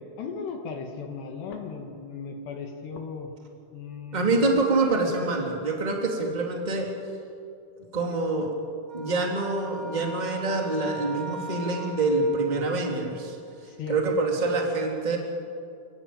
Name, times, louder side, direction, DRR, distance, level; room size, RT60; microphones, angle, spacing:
voice 1, 0.0-3.3 3.7-4.5 12.5-12.8 13.7-14.2, left 5 dB, 65° left, 4 dB, 3.8 m, -37 dB
voice 2, 4.1-6.9 7.9-8.5 8.9-13.4 13.9-15.2, right 3 dB, 10° right, 1 dB, 2.3 m, -26 dB
sound 1, 8.9-13.3, right 1 dB, 55° right, 1.1 m, -40 dB
28.5 x 19.0 x 8.9 m, 2.5 s
omnidirectional pair, 5.7 m